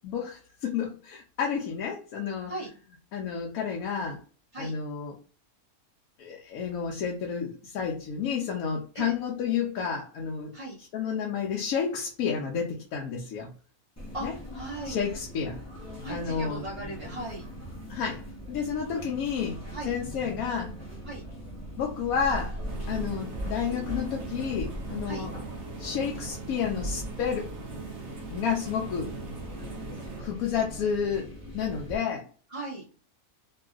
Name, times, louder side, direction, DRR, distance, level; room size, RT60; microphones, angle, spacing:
voice 1, 0.0-2.5 3.1-4.2 4.6-5.2 6.2-10.5 10.9-13.5 14.2-14.3 14.8-15.6 16.1-16.7 17.9-20.7 21.8-22.6 22.9-25.3 25.8-27.5 28.3-29.1 30.2-32.3, left 7 dB, 75° left, 0 dB, 1.0 m, -31 dB
sound 1, 14.0-32.0, equal, 15° left, 0.6 m, -40 dB
voice 2, 14.1-15.0 16.0-17.4 19.7-19.9 21.1-21.2 25.0-25.3 32.5-32.8, right 2 dB, 30° right, -7 dB, 0.7 m, -37 dB
sound 2, 22.7-30.2, right 4 dB, 60° right, 0.8 m, -41 dB
3.1 x 2.6 x 2.4 m, 0.38 s
omnidirectional pair, 1.6 m